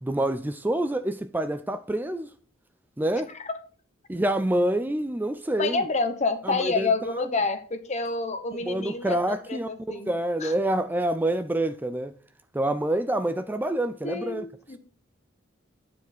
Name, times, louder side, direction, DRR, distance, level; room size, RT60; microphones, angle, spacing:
voice 1, 0.0-2.3 3.0-3.3 4.1-5.8 6.4-6.9 7.2-7.3 8.6-9.7 10.1-12.1 12.5-14.5, right 1 dB, 10° right, 0.4 m, -27 dB
voice 2, 5.6-10.1 10.4-10.5 14.0-14.8, left 3 dB, 35° left, 1.1 m, -28 dB
9.4 x 4.9 x 6.0 m
head